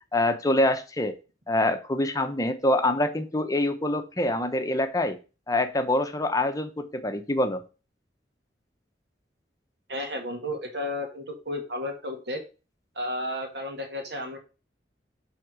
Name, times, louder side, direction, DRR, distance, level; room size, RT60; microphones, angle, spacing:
voice 1, 0.1-1.2 1.5-5.2 5.5-7.6, left 1 dB, 20° left, 8 dB, 0.8 m, -25 dB
voice 2, 9.9-12.4 13.0-14.4, left 1 dB, 70° right, 3 dB, 1.7 m, -33 dB
7.6 x 3.6 x 6.2 m, 0.32 s
head